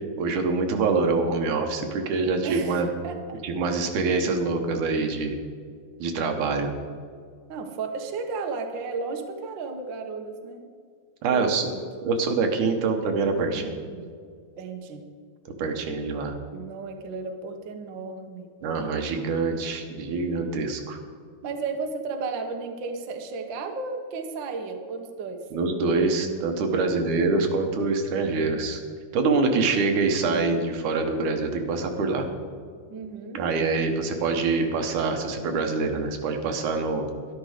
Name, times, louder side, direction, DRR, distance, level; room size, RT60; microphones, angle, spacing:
voice 1, 0.2-2.9 3.4-5.4 6.0-6.7 11.2-11.7 12.0-13.8 15.6-16.3 18.6-21.0 25.5-28.8 29.1-32.3 33.3-37.1, right 4 dB, 80° right, 4 dB, 2.7 m, -25 dB
voice 2, 2.4-3.4 7.5-10.6 11.3-11.8 13.4-14.1 14.6-15.0 16.5-18.5 21.4-25.4 26.8-27.1 32.9-33.4, right 4 dB, 55° right, 4 dB, 1.4 m, -34 dB
12.0 x 12.0 x 5.0 m, 2.1 s
omnidirectional pair, 3.5 m